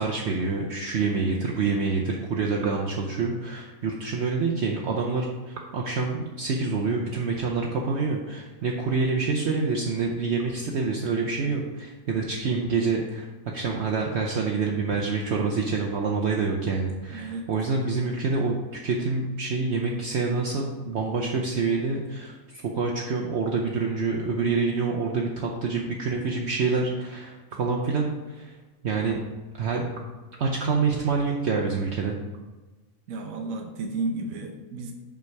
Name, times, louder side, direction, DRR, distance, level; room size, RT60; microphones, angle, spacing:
voice 1, 0.0-13.3 13.5-18.5 18.8-28.5 28.8-29.2 29.5-29.9 30.4-32.2, right 4 dB, 60° right, -1 dB, 0.9 m, -27 dB
voice 2, 17.1-17.5 33.1-34.9, right 3 dB, 75° right, 2 dB, 1.1 m, -32 dB
5.4 x 5.2 x 4.6 m, 1.2 s
omnidirectional pair, 1.5 m